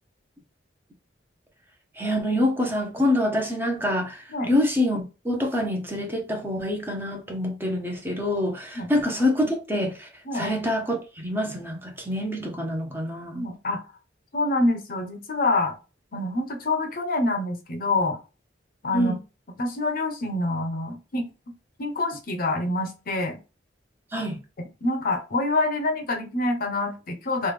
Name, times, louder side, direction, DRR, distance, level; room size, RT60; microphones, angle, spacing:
voice 1, 2.0-13.4 18.9-19.2 24.1-24.4, left 1 dB, 10° right, 0.7 m, -26 dB
voice 2, 13.3-13.9 14.3-15.7 16.1-18.2 18.8-19.1 19.6-21.3 21.8-23.4 24.6-27.5, left 2 dB, 50° left, 0.7 m, -26 dB
3.2 x 2.3 x 3.3 m
head